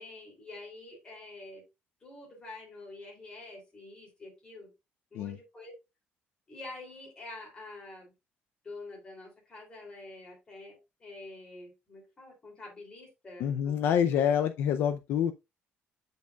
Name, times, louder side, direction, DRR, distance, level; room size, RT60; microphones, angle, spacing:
voice 1, 0.0-1.6 2.0-4.7 5.1-5.8 6.5-8.1 8.6-14.4, left 2 dB, 20° left, 2.8 m, -47 dB
voice 2, 13.4-15.3, left 8 dB, 65° left, 0.4 m, -27 dB
7.9 x 5.3 x 2.3 m
cardioid pair, 180°, 4 cm